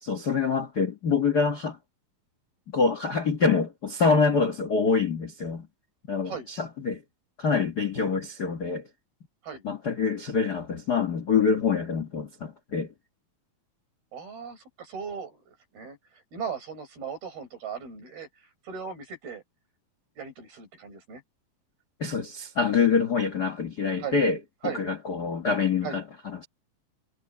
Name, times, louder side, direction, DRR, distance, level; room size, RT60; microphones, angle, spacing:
voice 1, 0.0-1.8 2.7-5.7 6.1-7.0 7.4-8.8 9.6-12.9 22.0-24.4 24.6-26.5, left 5 dB, 85° left, 0.8 m, -25 dB
voice 2, 14.1-19.4 20.2-21.2 24.0-24.2 24.6-24.8 25.8-26.0, right 6 dB, 80° right, 9.5 m, -38 dB
omnidirectional pair, 4.3 m